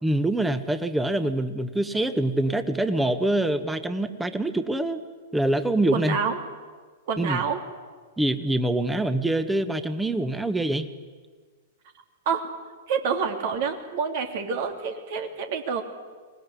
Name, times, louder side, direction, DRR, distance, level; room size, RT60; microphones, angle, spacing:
voice 1, 0.0-5.0 5.3-6.2 7.2-7.4 8.2-10.9, right 1 dB, 5° right, 10 dB, 1.7 m, -25 dB
voice 2, 5.9-6.4 7.1-7.6 12.2-12.5 12.9-15.8, right 6 dB, 55° right, 5 dB, 3.1 m, -27 dB
25.0 x 20.0 x 10.0 m, 1.5 s
figure-of-eight pair, 100°, 0 cm